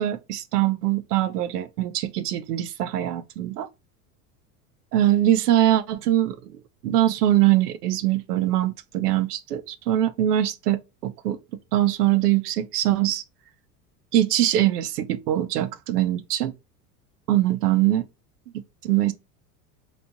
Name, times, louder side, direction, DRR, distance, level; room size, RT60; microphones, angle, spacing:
voice 1, 0.0-3.7 4.9-11.4 11.7-13.2 14.1-16.5 17.3-18.1 18.5-19.1, right 13 dB, 80° right, 0.7 m, -22 dB
3.3 x 3.0 x 2.5 m
hypercardioid pair, 95°, 46 cm